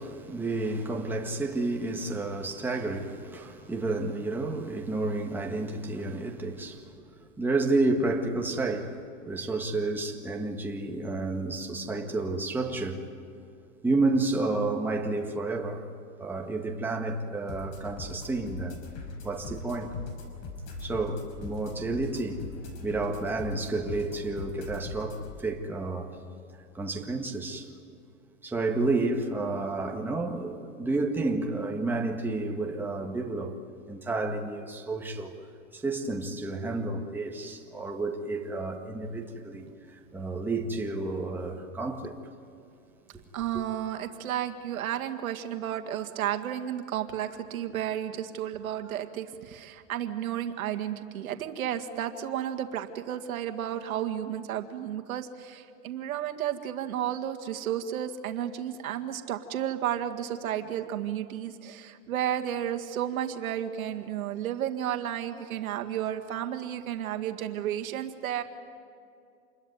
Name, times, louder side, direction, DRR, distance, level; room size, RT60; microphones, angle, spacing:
voice 1, 0.0-9.0 9.3-13.0 13.8-15.9 16.2-18.8 19.2-19.9 20.8-22.4 22.8-26.1 26.7-27.7 28.4-33.5 33.9-35.4 35.7-39.7 40.1-42.2 43.5-43.6, right 2 dB, 5° right, 1.7 m, -30 dB
sound 1, 17.5-25.3, left 3 dB, 40° left, 5.1 m, -40 dB
voice 2, 43.3-68.4, right 10 dB, 80° right, 2.0 m, -32 dB
27.5 x 22.0 x 9.3 m
supercardioid pair, 150°, 41 cm